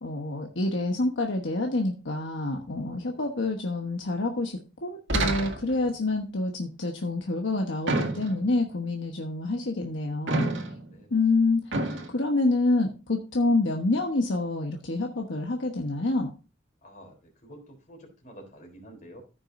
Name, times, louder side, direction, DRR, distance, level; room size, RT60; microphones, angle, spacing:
voice 1, 0.0-10.5 11.1-11.6 11.9-16.3, left 2 dB, 75° left, 1 dB, 1.2 m, -27 dB
sound 1, 5.1-5.9 7.9-8.6 10.3-10.9 11.7-12.1, right 2 dB, 85° right, 1.9 m, -28 dB
voice 2, 10.9-11.5 16.8-19.2, equal, 45° left, 2 dB, 3.7 m, -49 dB
14.5 x 6.2 x 2.7 m, 0.32 s
head